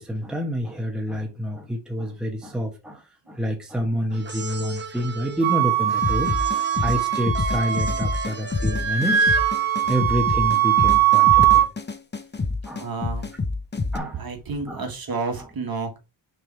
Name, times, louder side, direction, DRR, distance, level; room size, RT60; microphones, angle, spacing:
voice 1, 0.0-6.4 6.8-9.4 9.9-11.6 12.6-12.9 13.9-14.2 14.7-14.8, equal, ahead, 1.2 m, -28 dB
sound 1, 4.1-10.0, right 4 dB, 20° right, 0.9 m, -37 dB
Wind instrument woodwind instrument, 5.4-8.3 8.6-11.7, right 11 dB, 70° right, 1.1 m, -20 dB
sound 2, 6.0-14.0, left 3 dB, 20° left, 0.7 m, -27 dB
voice 2, 12.8-13.3 14.1-16.0, right 4 dB, 45° right, 1.6 m, -30 dB
6.7 x 3.4 x 4.4 m
wide cardioid pair, 165°, 49 cm